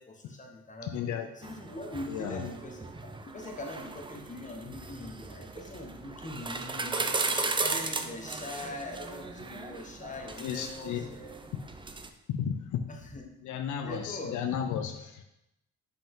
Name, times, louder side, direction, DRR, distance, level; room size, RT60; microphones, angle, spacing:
voice 1, 0.0-1.1 1.4-2.9 3.3-11.3 12.9-13.2 13.8-14.5, left 2 dB, 25° left, 2 dB, 1.2 m, -42 dB
voice 2, 0.8-1.3 2.1-2.5 4.7-4.8 10.4-11.1 12.3-12.8 13.4-15.2, left 8 dB, 75° left, 6 dB, 0.6 m, -33 dB
sound 1, 1.4-12.1, right 3 dB, 15° right, 0.5 m, -36 dB
5.5 x 5.2 x 3.7 m, 0.86 s
cardioid pair, 90°, 30 cm